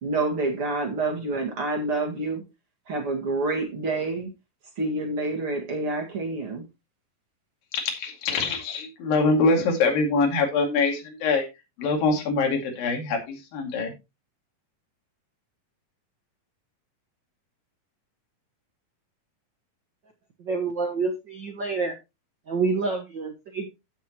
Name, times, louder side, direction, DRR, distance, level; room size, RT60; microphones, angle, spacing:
voice 1, 0.0-2.4 2.9-4.3 4.8-6.6, right 2 dB, 45° right, 1 dB, 2.3 m, -28 dB
voice 2, 7.7-11.4 11.8-13.9, left 3 dB, 70° left, 2 dB, 4.0 m, -24 dB
voice 3, 20.4-22.0 22.5-23.7, right 4 dB, 75° right, 4 dB, 1.0 m, -28 dB
15.0 x 6.4 x 2.9 m, 0.25 s
omnidirectional pair, 4.2 m